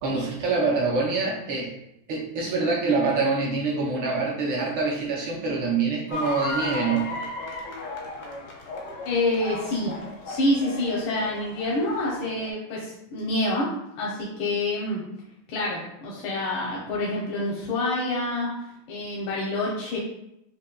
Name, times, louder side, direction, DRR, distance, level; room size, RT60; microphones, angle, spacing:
voice 1, 0.0-1.7 2.1-7.1, right 4 dB, 70° right, -3 dB, 1.3 m, -25 dB
sound 1, 6.1-12.5, left 2 dB, 65° left, 0.7 m, -35 dB
voice 2, 9.0-10.0 10.2-15.1 15.5-18.6 18.9-20.0, left 2 dB, 85° left, -4 dB, 1.5 m, -27 dB
5.1 x 2.8 x 2.2 m, 0.81 s
omnidirectional pair, 2.2 m